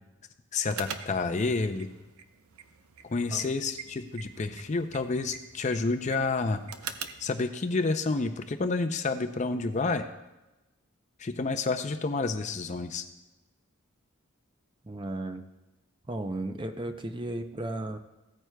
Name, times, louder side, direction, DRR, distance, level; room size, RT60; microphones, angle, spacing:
voice 1, 0.5-1.9 3.0-6.6 7.2-10.1 11.2-13.1, left 3 dB, 35° left, 8 dB, 0.4 m, -29 dB
sound 1, 0.7-7.3, right 7 dB, 80° right, 0.6 m, -44 dB
voice 2, 14.8-15.4 16.1-18.0, right 2 dB, 20° right, 7 dB, 0.5 m, -34 dB
15.5 x 9.1 x 2.2 m, 1.0 s
head